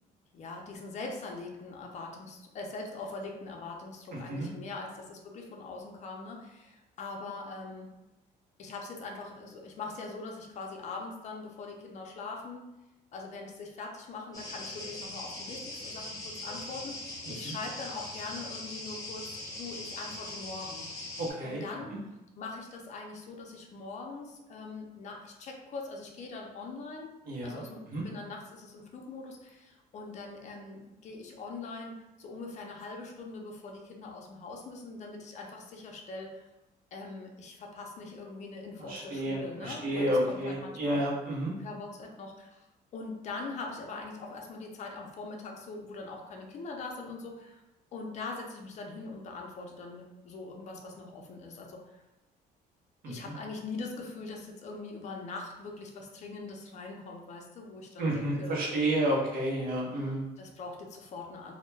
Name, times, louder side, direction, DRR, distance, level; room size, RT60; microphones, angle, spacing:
voice 1, 0.3-7.9 8.6-12.7 13.1-20.9 21.4-22.0 22.4-27.1 27.4-36.5 36.9-41.0 41.6-42.7 42.9-47.6 47.9-52.0 53.1-58.9 60.4-61.5, left 3 dB, 45° left, 1 dB, 0.5 m, -42 dB
voice 2, 4.1-4.5 17.3-17.5 21.2-21.6 27.3-27.6 27.9-28.0 38.9-41.5 53.0-53.1 58.0-60.2, right 1 dB, 60° right, -4 dB, 0.7 m, -30 dB
sound 1, 14.3-21.3, left 2 dB, 20° left, 0.8 m, -41 dB
2.1 x 2.1 x 3.2 m, 0.97 s
cardioid pair, 110°, 17 cm